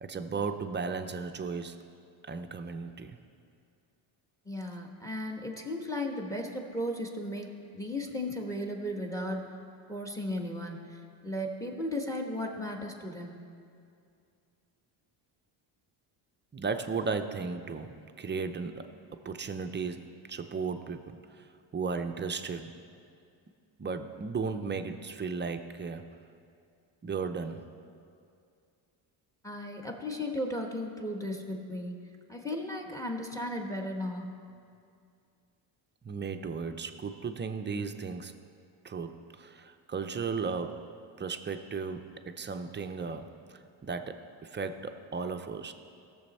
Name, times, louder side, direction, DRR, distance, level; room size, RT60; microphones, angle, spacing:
voice 1, 0.0-1.9 2.3-3.2 16.5-21.5 21.7-22.7 23.8-26.1 27.0-27.6 36.0-38.3 38.8-44.2 44.4-45.7, right 5 dB, 25° right, 7 dB, 0.5 m, -35 dB
voice 2, 4.4-7.5 7.7-9.5 9.9-13.5 29.4-32.0 32.3-34.3, left 1 dB, 5° left, 2 dB, 1.2 m, -35 dB
16.5 x 7.0 x 4.2 m, 2.4 s
cardioid pair, 115°, 47 cm